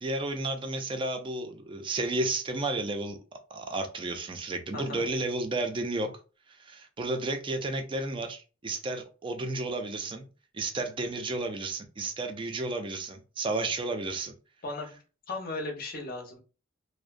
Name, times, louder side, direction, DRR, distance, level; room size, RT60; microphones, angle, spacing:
voice 1, 0.0-3.2 3.5-6.1 6.5-10.3 10.5-14.3, right 2 dB, 25° right, 0.4 m, -32 dB
voice 2, 4.7-5.1 14.6-15.0 15.3-16.4, left 2 dB, 50° left, 0.7 m, -36 dB
2.6 x 2.0 x 2.5 m
head